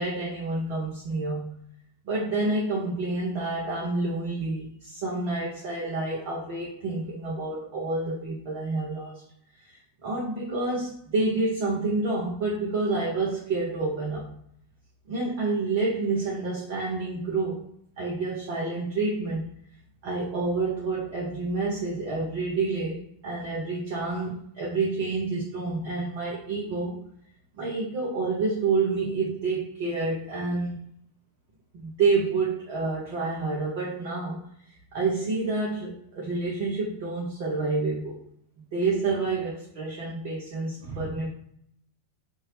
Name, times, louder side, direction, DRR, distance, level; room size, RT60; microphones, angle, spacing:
voice 1, 0.0-1.6 2.1-9.2 9.6-14.4 15.1-17.7 18.0-19.5 20.0-27.0 27.6-30.8 31.7-34.4 34.9-38.2 38.7-41.3, right 3 dB, 45° right, -4 dB, 0.8 m, -28 dB
2.7 x 2.7 x 3.2 m, 0.70 s
figure-of-eight pair, 90°, 0 cm